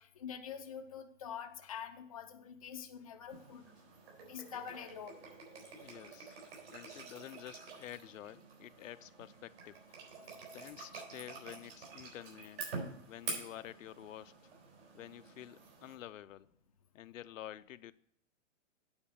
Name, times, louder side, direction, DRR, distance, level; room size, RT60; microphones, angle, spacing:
voice 1, 0.0-3.7 4.2-5.2, left 8 dB, 30° left, 0.4 m, -45 dB
sound 1, 3.3-15.9, right 3 dB, 60° right, 4.2 m, -48 dB
voice 2, 5.8-6.4 6.7-9.8 10.5-12.7 13.1-14.3 14.9-16.5 16.9-17.9, left 12 dB, 85° left, 0.6 m, -49 dB
8.9 x 4.3 x 7.2 m
hypercardioid pair, 170°, 38 cm